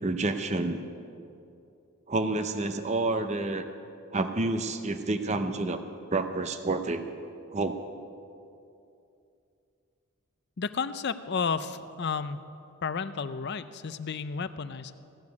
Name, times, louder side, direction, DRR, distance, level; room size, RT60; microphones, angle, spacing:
voice 1, 0.0-0.8 2.1-3.7 4.1-5.8 6.1-7.1 7.5-7.8, right 2 dB, 30° right, 8 dB, 0.6 m, -29 dB
voice 2, 10.6-12.4 12.8-14.9, left 5 dB, 50° left, 13 dB, 0.5 m, -32 dB
16.0 x 7.3 x 9.5 m, 2.6 s
head